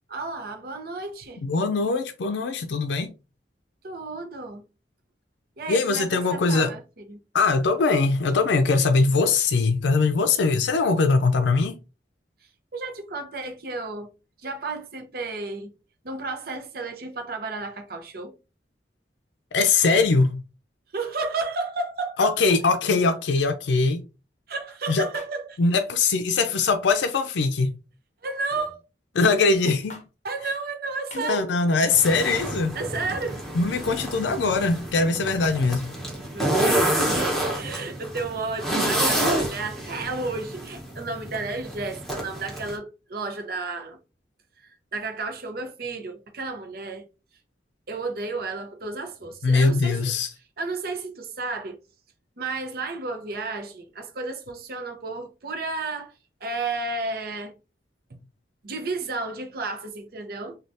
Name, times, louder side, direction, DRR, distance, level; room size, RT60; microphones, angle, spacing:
voice 1, 0.1-1.4 3.8-4.6 5.6-7.2 12.7-14.1 14.4-15.7 16.0-18.3 20.9-22.3 24.5-25.6 28.2-28.8 30.2-31.5 32.7-33.4 36.3-44.0 44.6-47.1 47.9-50.1 50.6-51.8 52.4-56.1 56.4-57.5 58.1-58.2 58.6-60.6, right 3 dB, 55° right, 0.6 m, -32 dB
voice 2, 1.4-3.1 5.7-6.7 7.3-11.8 19.5-20.4 22.2-24.0 24.9-25.1 25.6-27.7 29.2-30.0 31.1-32.7 33.5-35.9 49.4-50.3, left 4 dB, 85° left, 0.4 m, -21 dB
sound 1, 25.1-25.3 26.9-27.2 28.5-28.8 29.9-30.1 31.1-31.3, left 3 dB, 40° left, 0.7 m, -42 dB
sound 2, 31.9-42.8, right 1 dB, ahead, 0.9 m, -28 dB
3.3 x 2.3 x 2.6 m
head